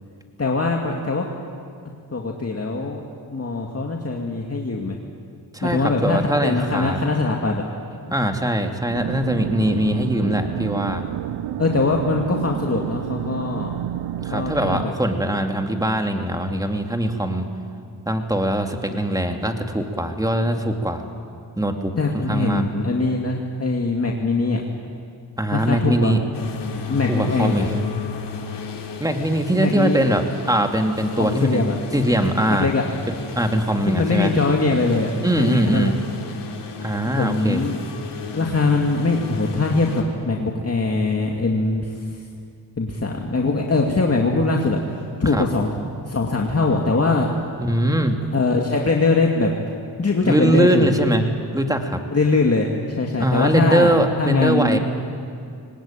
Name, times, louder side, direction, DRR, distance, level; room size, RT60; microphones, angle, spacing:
voice 1, 0.4-1.3 2.1-3.0 3.3-5.0 5.6-7.6 11.6-13.7 14.3-14.9 22.0-24.6 25.5-26.1 26.9-27.7 29.6-30.0 31.2-31.7 32.6-32.8 33.9-35.9 37.2-37.8 38.3-41.9 42.8-45.7 46.0-47.3 48.3-49.5 50.0-50.9 52.1-54.8, left 3 dB, 35° left, 0 dB, 2.5 m, -22 dB
voice 2, 5.5-7.0 8.1-11.0 14.2-17.5 18.1-21.1 21.6-22.6 25.4-26.2 27.1-27.8 29.0-31.7 31.9-32.7 33.1-34.3 35.2-36.0 36.8-37.6 45.3-45.4 47.6-48.2 50.2-52.0 53.2-54.8, right 1 dB, 10° right, 4 dB, 2.7 m, -21 dB
sound 1, 8.9-14.9, right 13 dB, 65° right, 0.6 m, -30 dB
sound 2, 26.3-40.0, left 6 dB, 70° left, 3.4 m, -34 dB
21.5 x 19.5 x 9.1 m, 2.3 s
supercardioid pair, 55°, 44 cm